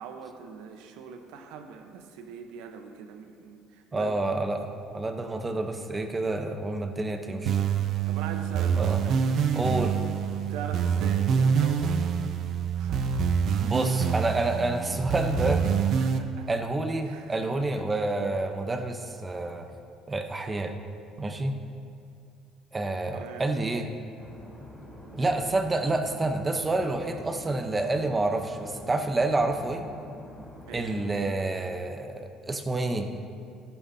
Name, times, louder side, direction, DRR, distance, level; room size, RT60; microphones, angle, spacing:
voice 1, 0.0-4.2 8.1-9.2 10.5-11.9 12.8-13.6 16.0-16.5 17.0-17.4 23.1-23.5 30.7-31.0, right 6 dB, 85° right, 6 dB, 0.9 m, -42 dB
voice 2, 3.9-7.6 8.7-9.0 9.5-9.9 13.6-15.6 16.5-19.7 20.1-20.7 21.2-21.6 22.7-23.9 25.1-29.8 30.7-33.1, right 2 dB, 20° right, 6 dB, 0.8 m, -28 dB
sound 1, 7.5-16.2, right 7 dB, 60° right, 0.7 m, -26 dB
sound 2, 24.2-31.3, left 1 dB, 5° left, 1.9 m, -45 dB
12.5 x 11.5 x 2.8 m, 2.4 s
cardioid pair, 110°, 0 cm